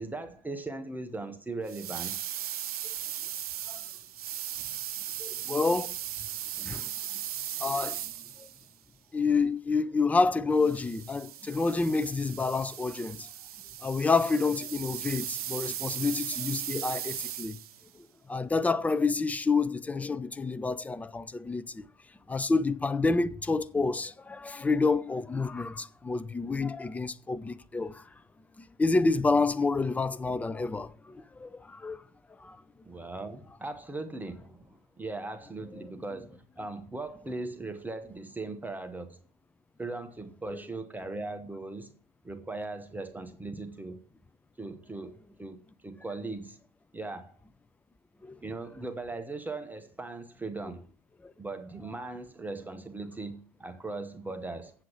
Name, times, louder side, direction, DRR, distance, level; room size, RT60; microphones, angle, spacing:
voice 1, 0.0-2.2 32.8-39.2 39.8-41.9 42.2-44.0 44.6-46.6 46.9-47.4 48.4-50.9 51.4-54.7, right 3 dB, 10° right, 0.8 m, -39 dB
sound 1, 1.7-8.7 10.6-17.8, right 11 dB, 65° right, 0.5 m, -37 dB
voice 2, 5.2-5.9 6.6-6.9 7.6-8.0 8.4-8.5 9.1-13.3 13.8-17.6 18.3-21.9 22.3-28.0 28.6-32.0 32.4-32.6 35.8-35.9 48.2-48.4 51.2-51.3, left 4 dB, 5° left, 0.4 m, -28 dB
7.7 x 7.6 x 5.9 m
figure-of-eight pair, 80°, 21 cm